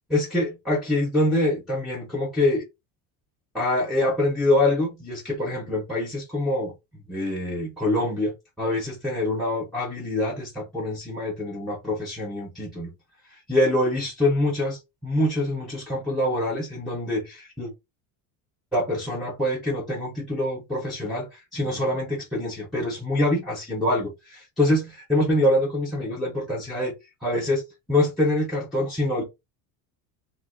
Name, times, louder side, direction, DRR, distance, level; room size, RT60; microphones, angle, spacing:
voice 1, 0.1-2.6 3.5-6.7 7.1-12.9 13.5-17.7 18.7-26.9 27.2-27.6 27.9-29.2, left 1 dB, ahead, 0.5 m, -25 dB
2.7 x 2.0 x 3.8 m
cardioid pair, 170°, 38 cm